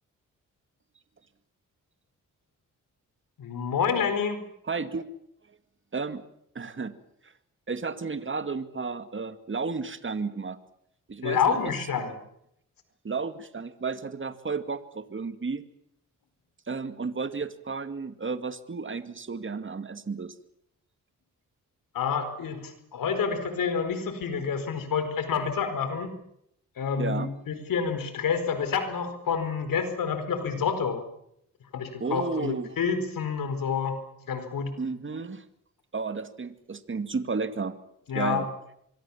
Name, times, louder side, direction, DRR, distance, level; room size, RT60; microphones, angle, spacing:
voice 1, 3.4-4.4 11.2-12.2 21.9-26.1 26.8-31.0 31.7-33.9 34.3-34.7 38.1-38.4, left 6 dB, 80° left, 9 dB, 4.7 m, -28 dB
voice 2, 4.6-5.1 5.9-6.2 6.5-6.9 7.7-10.6 11.1-11.6 13.0-15.6 16.7-20.3 27.0-27.3 32.0-32.8 34.8-35.4 35.9-37.8 38.1-38.5, right 4 dB, 35° right, 10 dB, 2.2 m, -32 dB
25.5 x 23.5 x 7.2 m, 0.75 s
cardioid pair, 65°, 33 cm